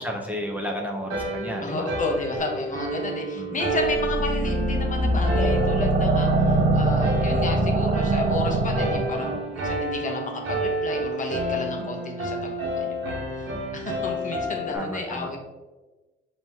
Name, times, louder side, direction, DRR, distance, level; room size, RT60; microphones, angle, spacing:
voice 1, 0.0-1.9 3.3-3.6 11.8-11.9 14.7-15.3, equal, 10° right, 0 dB, 0.6 m, -32 dB
sound 1, 1.1-14.8, right 1 dB, 85° right, 1.0 m, -30 dB
voice 2, 1.6-15.4, left 2 dB, 40° left, 1 dB, 0.9 m, -32 dB
sound 2, 3.8-9.4, right 2 dB, 45° right, 0.7 m, -23 dB
5.3 x 3.0 x 2.8 m, 1.2 s
cardioid pair, 90°, 20 cm